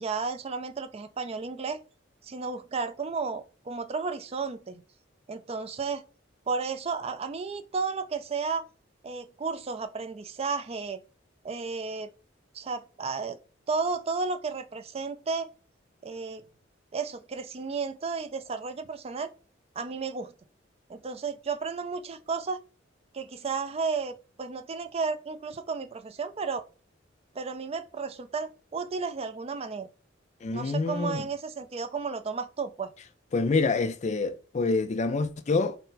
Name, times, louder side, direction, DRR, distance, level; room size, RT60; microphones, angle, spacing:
voice 1, 0.0-1.8 2.2-4.8 5.3-6.0 6.5-8.7 9.0-11.0 11.4-12.1 12.5-13.4 13.7-15.5 16.0-16.4 16.9-19.3 19.8-20.3 20.9-22.6 23.1-26.6 27.3-29.9 30.5-32.9, right 4 dB, 30° right, 0.4 m, -33 dB
voice 2, 30.4-31.2 33.3-35.8, left 3 dB, 35° left, 0.4 m, -27 dB
4.2 x 2.1 x 3.9 m
head